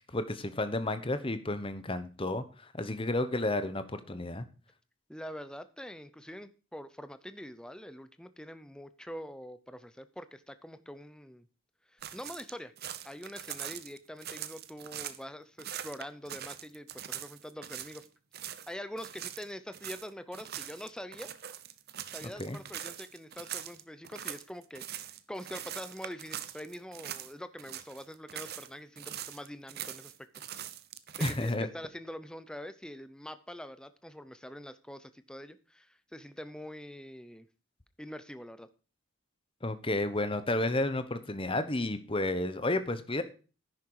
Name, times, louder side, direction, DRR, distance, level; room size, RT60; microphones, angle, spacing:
voice 1, 0.0-4.5 22.2-22.6 31.2-31.7 39.6-43.2, left 2 dB, 25° left, 11 dB, 1.0 m, -32 dB
voice 2, 5.1-11.5 11.9-12.7 13.0-18.1 18.7-21.3 22.1-30.3 31.3-37.5 38.0-38.7, equal, 5° left, 12 dB, 0.6 m, -44 dB
sound 1, 12.0-15.2 15.6-18.1 18.3-18.7 19.0-27.3 27.6-28.7 29.0-31.6, right 10 dB, 45° right, 0.8 m, -42 dB
10.5 x 9.4 x 4.8 m, 0.36 s
head